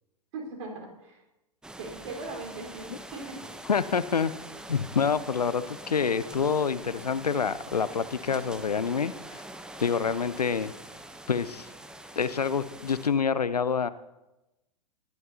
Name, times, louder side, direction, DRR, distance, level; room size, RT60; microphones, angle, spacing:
voice 1, 0.3-1.2 1.8-3.4, right 3 dB, 50° right, 1 dB, 4.4 m, -39 dB
sound 1, 1.6-13.1, right 1 dB, 5° right, 0.8 m, -44 dB
voice 2, 3.7-4.3 4.7-9.4 9.8-10.7 11.3-11.7 12.2-13.9, left 6 dB, 85° left, 16 dB, 0.5 m, -27 dB
20.5 x 11.0 x 2.8 m, 0.97 s
figure-of-eight pair, 100°, 20 cm